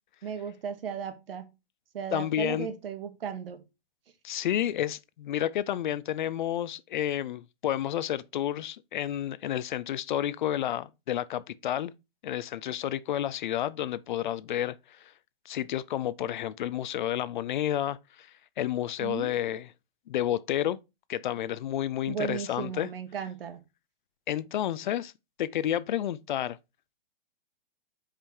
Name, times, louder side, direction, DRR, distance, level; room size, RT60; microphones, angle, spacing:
voice 1, 0.2-1.5 1.9-3.6 19.0-19.3 22.1-23.6, right 7 dB, 70° right, 1.6 m, -35 dB
voice 2, 2.1-2.7 4.2-11.9 12.2-15.0 15.5-18.3 18.6-19.7 20.1-20.8 21.1-22.9 24.3-25.1 25.4-26.6, left 11 dB, 55° left, 0.5 m, -30 dB
5.4 x 5.1 x 4.4 m
hypercardioid pair, 150°, 30 cm